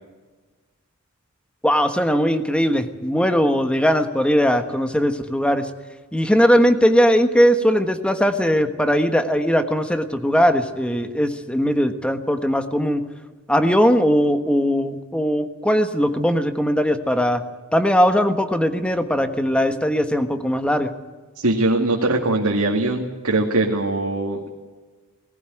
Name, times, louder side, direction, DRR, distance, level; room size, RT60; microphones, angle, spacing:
voice 1, 1.6-5.7 6.1-13.0 13.5-17.4 17.7-20.9, equal, 5° left, 7 dB, 1.4 m, -19 dB
voice 2, 21.4-24.5, right 2 dB, 85° right, -1 dB, 2.1 m, -21 dB
19.0 x 16.5 x 9.1 m, 1.3 s
head